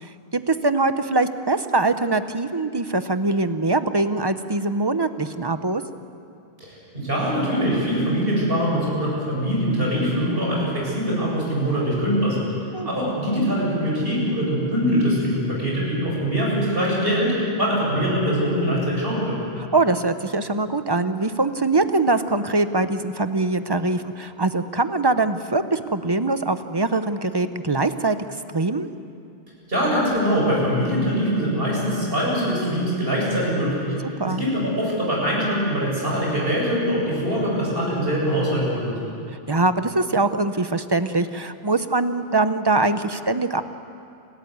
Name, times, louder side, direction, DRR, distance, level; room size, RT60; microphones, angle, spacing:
voice 1, 0.0-5.8 12.7-12.9 19.7-28.2 28.5-28.9 34.2-34.4 39.5-43.6, right 3 dB, 25° right, 10 dB, 0.8 m, -22 dB
voice 2, 6.6-12.5 12.8-19.4 29.7-33.9 34.2-39.1, equal, 65° right, -4 dB, 7.9 m, -23 dB
30.0 x 13.5 x 9.5 m, 2.5 s
omnidirectional pair, 1.1 m